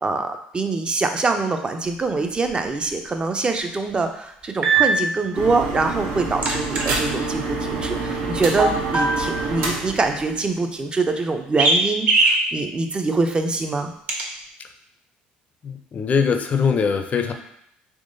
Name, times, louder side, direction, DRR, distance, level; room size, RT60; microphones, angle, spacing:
voice 1, 0.0-13.9, right 3 dB, 25° right, 6 dB, 0.5 m, -24 dB
sound 1, 2.5-2.6 4.6-4.9 6.4-6.8 8.6-9.4 11.6-11.8 12.1-12.4 14.1-14.2, right 4 dB, 45° right, 1.0 m, -19 dB
sound 2, 5.3-10.8, right 3 dB, 80° right, 0.7 m, -27 dB
voice 2, 15.6-17.3, left 6 dB, 40° left, 6 dB, 0.4 m, -22 dB
3.6 x 3.1 x 2.6 m, 0.72 s
supercardioid pair, 85°, 4 cm